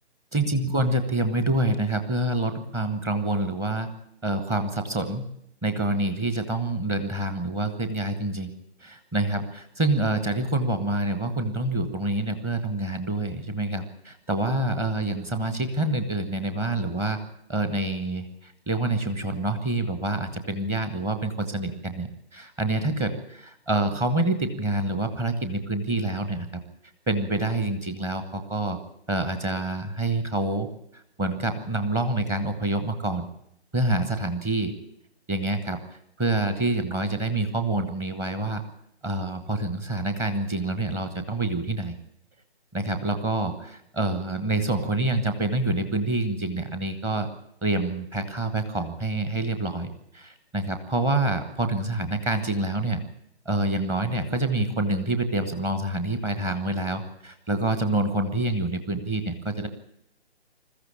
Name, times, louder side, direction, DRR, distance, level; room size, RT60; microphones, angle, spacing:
voice 1, 0.3-3.9 4.2-5.3 5.6-8.5 8.8-17.2 17.5-26.6 27.1-28.8 29.1-30.7 30.9-33.3 33.7-34.7 35.3-38.6 39.0-41.9 42.7-47.3 47.6-53.0 53.4-59.7, right 2 dB, 10° right, 8 dB, 1.1 m, -27 dB
21.0 x 14.5 x 8.7 m, 0.77 s
figure-of-eight pair, 140°, 33 cm